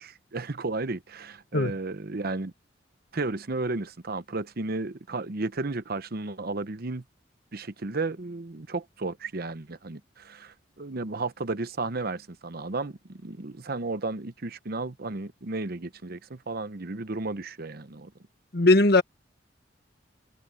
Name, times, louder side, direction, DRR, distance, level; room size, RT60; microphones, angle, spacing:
voice 1, 0.0-2.5 3.1-7.0 7.5-18.1, right 3 dB, 55° right, 0.9 m, -33 dB
voice 2, 18.5-19.0, left 2 dB, 60° left, 1.5 m, -18 dB
head